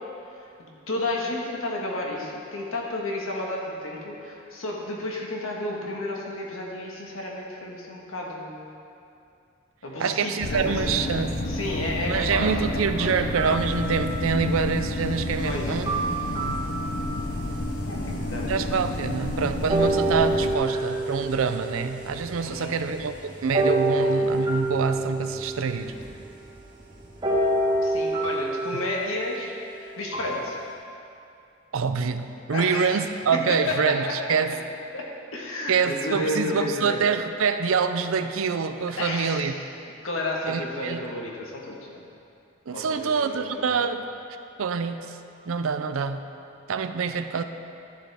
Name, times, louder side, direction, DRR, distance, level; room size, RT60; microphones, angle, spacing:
voice 1, 0.9-8.7 9.8-11.1 11.5-13.1 15.4-15.7 17.9-18.5 22.4-22.8 27.8-30.6 32.5-33.0 33.5-34.1 34.9-35.0 35.3-37.0 39.0-39.5 40.0-42.0 42.7-43.8, left 2 dB, 75° left, -2 dB, 1.6 m, -32 dB
voice 2, 10.0-11.4 12.0-15.9 18.5-25.9 31.7-34.5 35.7-39.5 40.5-41.0 42.7-44.0 44.6-45.2 45.5-46.2 46.7-47.4, right 5 dB, 80° right, 9 dB, 0.5 m, -26 dB
sound 1, 10.4-20.6, left 1 dB, 50° left, 0.5 m, -30 dB
sound 2, 13.3-14.5 15.8-17.6 18.2-18.3 19.7-22.6 23.5-26.2 27.2-30.7, right 2 dB, 20° right, 1.1 m, -27 dB
sound 3, 17.2-28.0, equal, 5° left, 1.6 m, -45 dB
12.5 x 7.4 x 3.5 m, 2.6 s
head